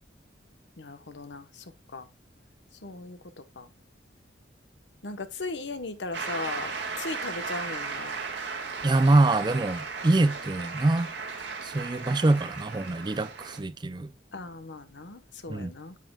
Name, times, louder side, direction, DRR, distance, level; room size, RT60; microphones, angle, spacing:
voice 1, 0.8-1.6 1.9-2.1 2.8-3.7 5.0-8.1 14.3-16.0, left 3 dB, 80° left, 1.1 m, -38 dB
Shout / Cheering / Applause, 6.1-13.6, right 4 dB, 75° right, 2.1 m, -36 dB
voice 2, 8.8-11.1 11.6-14.1 15.5-15.7, right 2 dB, 25° right, 0.4 m, -24 dB
9.3 x 7.6 x 2.3 m
head